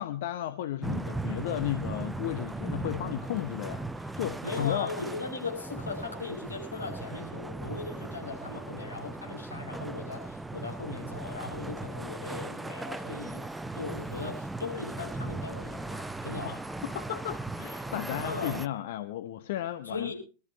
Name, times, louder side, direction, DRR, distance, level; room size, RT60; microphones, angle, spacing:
voice 1, 0.0-4.9 16.4-20.1, left 12 dB, 55° left, 1.0 m, -34 dB
sound 1, 0.8-18.7, right 2 dB, 5° right, 0.6 m, -38 dB
voice 2, 4.4-16.6 18.2-18.6 19.8-20.1, left 3 dB, 80° left, 6.4 m, -38 dB
25.0 x 13.0 x 2.8 m
figure-of-eight pair, 90°, 0 cm